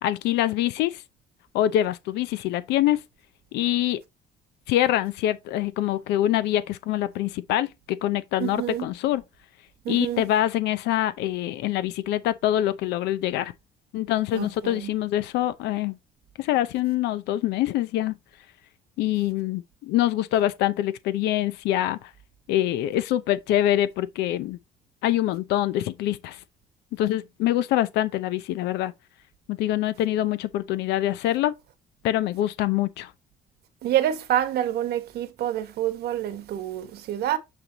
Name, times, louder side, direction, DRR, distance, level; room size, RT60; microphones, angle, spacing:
voice 1, 0.0-1.0 1.5-3.0 3.5-4.0 4.7-9.2 9.9-13.5 13.9-16.0 16.4-18.1 19.0-22.0 22.5-24.6 25.0-26.4 26.9-28.9 29.5-31.5 32.0-33.1, left 13 dB, 85° left, 0.6 m, -25 dB
voice 2, 8.4-8.9 9.8-10.2 14.3-14.9 33.8-37.4, right 11 dB, 75° right, 1.4 m, -27 dB
8.5 x 3.4 x 3.9 m
cardioid pair, 110°, 17 cm